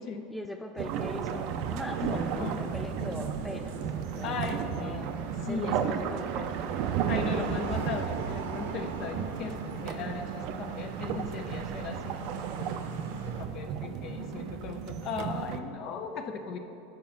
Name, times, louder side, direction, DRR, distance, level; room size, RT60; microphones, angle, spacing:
voice 1, 0.3-4.4 4.6-5.1 5.5-6.8, left 1 dB, 5° left, 4 dB, 0.3 m, -41 dB
sound 1, 0.8-15.6, right 8 dB, 55° right, 0.4 m, -34 dB
sound 2, 0.9-13.4, right 5 dB, 90° right, 0.8 m, -43 dB
voice 2, 2.0-2.6 4.2-5.1 5.4-5.8 7.1-10.3 10.6-16.6, left 5 dB, 45° left, 6 dB, 0.7 m, -37 dB
7.4 x 5.2 x 5.7 m, 2.8 s
supercardioid pair, 130°, 0 cm